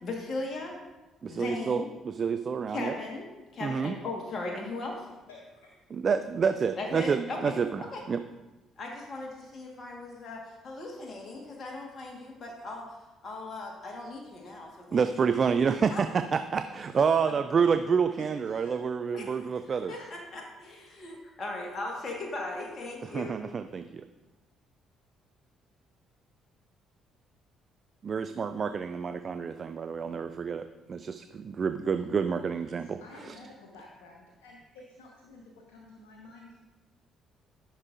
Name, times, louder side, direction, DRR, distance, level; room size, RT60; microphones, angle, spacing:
voice 1, 0.0-0.7 1.3-1.9 2.7-5.1 6.8-8.0 8.8-12.8 13.2-15.0 15.9-16.0 17.3-17.4 19.2-19.3 19.9-23.4, left 2 dB, 45° left, 0 dB, 1.4 m, -38 dB
voice 2, 1.2-3.0 3.6-3.9 5.9-7.8 8.1-8.2 14.9-19.9 23.0-24.0 28.0-33.0 33.3-33.4, right 6 dB, 45° right, 9 dB, 0.4 m, -28 dB
voice 3, 5.3-6.0 18.2-18.8 19.1-19.2 19.9-20.1 32.5-36.6, left 2 dB, 75° left, -1 dB, 1.1 m, -51 dB
13.0 x 6.4 x 2.5 m, 1.1 s
hypercardioid pair, 50°, 0 cm